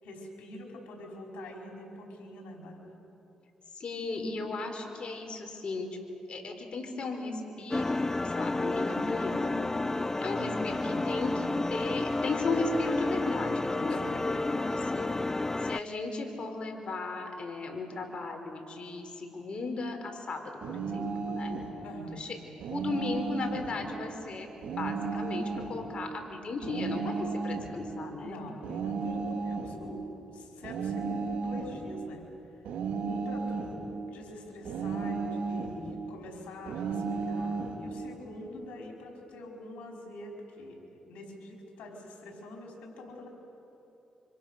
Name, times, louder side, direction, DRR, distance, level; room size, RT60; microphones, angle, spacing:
voice 1, 0.0-2.9 13.9-14.2 21.8-22.2 28.1-32.3 33.0-33.8 34.1-43.3, left 1 dB, 85° left, 0 dB, 5.1 m, -45 dB
voice 2, 3.7-5.9 6.3-15.1 15.6-21.6 22.1-22.4 22.7-28.4, left 3 dB, 50° left, 4 dB, 4.3 m, -36 dB
sound 1, 7.7-15.8, left 2 dB, 20° left, 0.5 m, -31 dB
sound 2, 20.6-21.7 22.6-23.7 24.6-25.7 26.6-27.7 28.6-29.8 30.6-31.8 32.6-33.8 34.6-35.8 36.7-37.8, right 4 dB, 85° right, 3.1 m, -33 dB
26.5 x 26.0 x 6.6 m, 2.9 s
cardioid pair, 65°, 2 cm